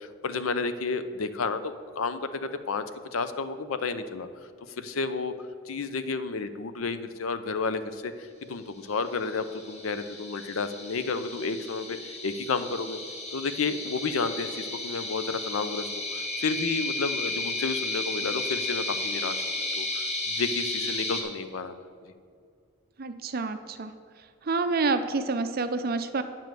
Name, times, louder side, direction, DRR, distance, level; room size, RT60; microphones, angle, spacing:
voice 1, 0.0-2.8 3.1-4.3 4.8-5.3 5.7-13.0 13.3-21.9, left 4 dB, 85° left, 11 dB, 0.6 m, -31 dB
sound 1, 9.0-21.2, left 2 dB, 35° left, 1.4 m, -33 dB
voice 2, 23.0-23.9 24.5-26.2, right 3 dB, 45° right, 9 dB, 0.5 m, -28 dB
9.1 x 5.2 x 7.5 m, 2.3 s
head